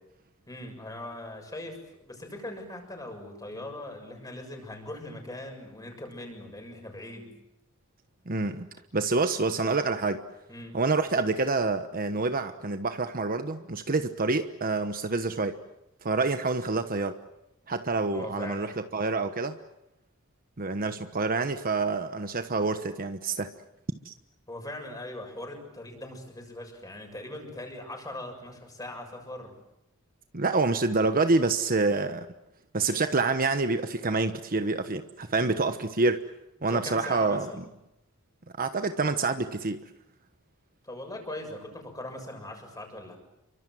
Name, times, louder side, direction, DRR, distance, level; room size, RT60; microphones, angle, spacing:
voice 1, 0.5-7.4 10.5-10.8 18.1-18.8 24.5-29.6 36.7-37.7 40.8-43.2, left 1 dB, 15° left, 7.1 m, -40 dB
voice 2, 8.3-8.7 8.9-10.2 10.7-15.6 16.0-17.2 17.7-19.6 20.6-23.5 24.0-24.1 30.3-32.3 32.7-36.2 36.6-37.6 38.6-39.8, right 3 dB, 40° right, 1.2 m, -27 dB
29.5 x 24.5 x 7.8 m
head